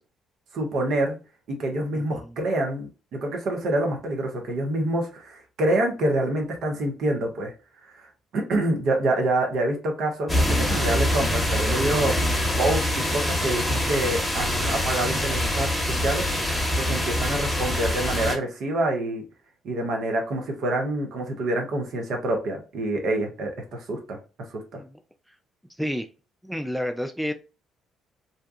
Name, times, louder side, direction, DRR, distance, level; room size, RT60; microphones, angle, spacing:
voice 1, 0.5-1.2 1.5-7.5 7.9-8.1 8.3-12.3 12.6-12.8 13.1-19.2 19.6-24.2 24.5-24.6, right 1 dB, 60° right, 2 dB, 0.7 m, -26 dB
voice 2, 1.9-2.3 24.8-24.9 25.8-26.1 26.4-27.3, equal, ahead, 7 dB, 0.3 m, -30 dB
sound 1, 10.3-18.4, left 1 dB, 15° left, 1.0 m, -25 dB
2.7 x 2.2 x 2.5 m, 0.32 s
hypercardioid pair, 45°, 0 cm